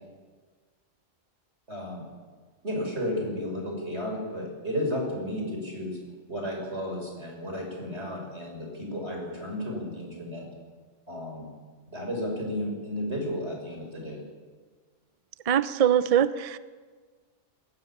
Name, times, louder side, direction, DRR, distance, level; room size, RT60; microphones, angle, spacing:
voice 1, 1.7-2.0 2.6-6.0 6.3-10.5 11.1-11.5 11.9-14.2, left 1 dB, 55° right, 1 dB, 6.3 m, -33 dB
voice 2, 15.5-16.6, right 9 dB, 35° right, 14 dB, 0.6 m, -22 dB
21.0 x 17.5 x 8.8 m, 1.5 s
omnidirectional pair, 1.4 m